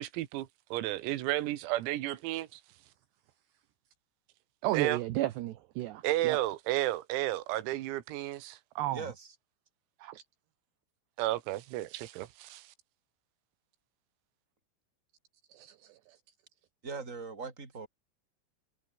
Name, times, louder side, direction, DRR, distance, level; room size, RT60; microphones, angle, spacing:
voice 1, 0.0-2.6 4.7-5.0 6.0-8.6 11.2-12.7, right 16 dB, 85° right, 4.1 m, -32 dB
voice 2, 4.6-6.4 8.8-9.0 10.0-10.2 15.5-16.0, right 15 dB, 70° right, 2.8 m, -33 dB
voice 3, 8.9-9.3 16.8-17.9, right 4 dB, 15° right, 4.2 m, -40 dB
omnidirectional pair, 6.0 m